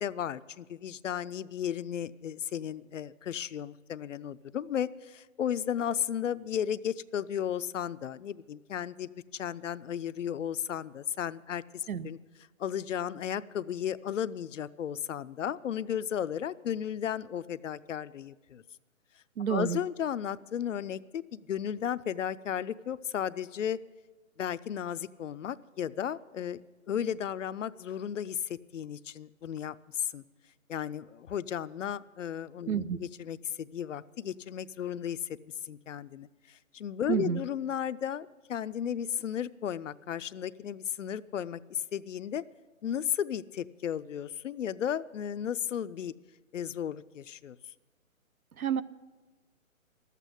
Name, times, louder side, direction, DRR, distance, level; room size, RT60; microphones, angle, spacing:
voice 1, 0.0-12.2 12.6-18.6 19.5-23.8 24.4-26.6 26.9-30.2 30.7-32.8 33.2-35.4 35.6-42.4 42.8-46.1 46.5-47.6, left 9 dB, 60° left, 15 dB, 0.5 m, -34 dB
voice 2, 19.4-19.8 32.7-33.0 37.1-37.4 48.5-48.8, right 8 dB, 85° right, 16 dB, 0.8 m, -29 dB
12.5 x 8.3 x 9.9 m, 1.3 s
hypercardioid pair, 155°, 41 cm